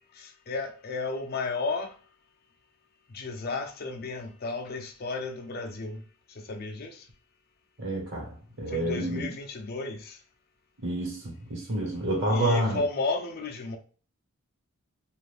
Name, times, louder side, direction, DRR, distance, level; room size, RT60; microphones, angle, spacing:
voice 1, 0.1-1.9 3.1-6.0 6.3-7.0 8.7-10.2 12.3-13.8, left 3 dB, 45° left, 0.5 m, -33 dB
voice 2, 7.8-9.3 10.8-12.8, right 1 dB, 60° right, 1.2 m, -29 dB
2.5 x 2.5 x 3.4 m
head